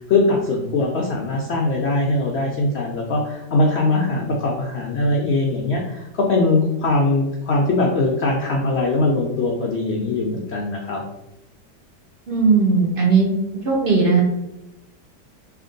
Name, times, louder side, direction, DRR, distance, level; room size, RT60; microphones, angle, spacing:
voice 1, 0.0-11.0, left 2 dB, 75° left, -1 dB, 0.6 m, -21 dB
voice 2, 12.3-13.3 13.6-14.2, right 4 dB, 65° right, -2 dB, 0.5 m, -17 dB
3.4 x 2.9 x 3.7 m, 0.93 s
omnidirectional pair, 1.8 m